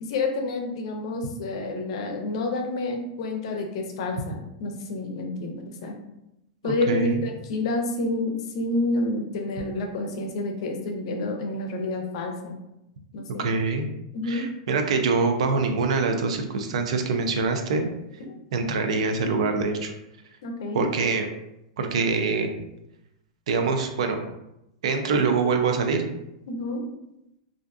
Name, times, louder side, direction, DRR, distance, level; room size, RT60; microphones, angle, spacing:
voice 1, 0.0-5.9 6.6-12.6 13.1-13.5 14.1-14.5 20.4-20.9 26.5-26.8, left 2 dB, 60° left, 3 dB, 0.5 m, -29 dB
voice 2, 6.6-7.2 13.4-13.9 14.2-17.9 18.5-19.9 20.7-21.3 21.8-22.5 23.5-24.2 24.8-26.0, right 4 dB, 75° right, 5 dB, 0.4 m, -24 dB
2.5 x 2.2 x 2.4 m, 0.87 s
hypercardioid pair, 140°, 3 cm